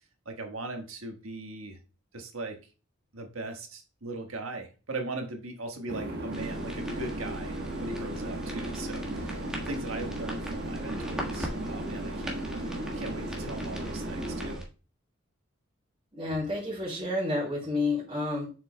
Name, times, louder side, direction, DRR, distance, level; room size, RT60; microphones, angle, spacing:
voice 1, 0.2-1.8 2.1-2.6 3.1-12.4 12.9-14.7, right 2 dB, 90° right, 3 dB, 1.4 m, -39 dB
sound 1, 5.9-14.6, right 1 dB, 55° right, 1.2 m, -35 dB
sound 2, 6.3-14.6, equal, 5° right, 1.5 m, -40 dB
voice 2, 16.1-18.5, left 2 dB, 30° right, -4 dB, 2.8 m, -30 dB
7.2 x 6.1 x 2.2 m, 0.33 s
head